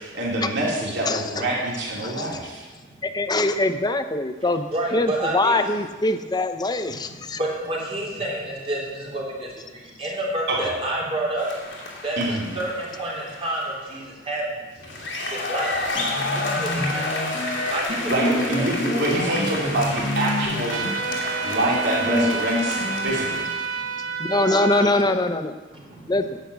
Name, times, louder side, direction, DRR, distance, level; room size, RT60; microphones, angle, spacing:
voice 1, 0.0-2.6 10.5-10.7 12.2-12.5 18.1-20.8 21.2-23.4, right 1 dB, 65° right, -4 dB, 3.4 m, -26 dB
voice 2, 1.0-1.5 2.0-2.4 3.0-7.4 24.2-25.5 26.1-26.4, left 2 dB, 20° left, 9 dB, 0.6 m, -23 dB
voice 3, 2.7-3.0 4.4-5.6 6.9-11.5 12.0-14.8 15.3-15.8 16.3-17.2 17.7-18.7 21.4-21.5 23.0-23.3 23.7-24.4 24.7-25.0 25.7-26.2, right 1 dB, 30° right, -3 dB, 3.1 m, -30 dB
sound 1, 11.4-13.8 14.8-23.7, left 2 dB, 70° left, 2.5 m, -31 dB
sound 2, 15.9-23.1, left 1 dB, 40° left, 1.6 m, -28 dB
sound 3, 20.7-24.9, right 5 dB, 85° right, 0.9 m, -29 dB
10.5 x 8.4 x 6.9 m, 1.3 s
head